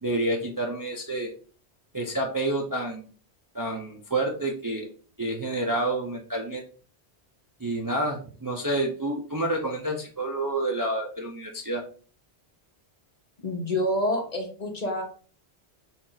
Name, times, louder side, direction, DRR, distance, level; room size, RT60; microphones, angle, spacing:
voice 1, 0.0-1.3 1.9-3.1 3.5-4.9 5.2-6.6 7.6-11.8, right 1 dB, 25° right, 0 dB, 0.5 m, -29 dB
voice 2, 13.4-15.0, left 1 dB, 40° left, 2 dB, 0.9 m, -27 dB
4.2 x 2.5 x 3.9 m, 0.40 s
omnidirectional pair, 1.1 m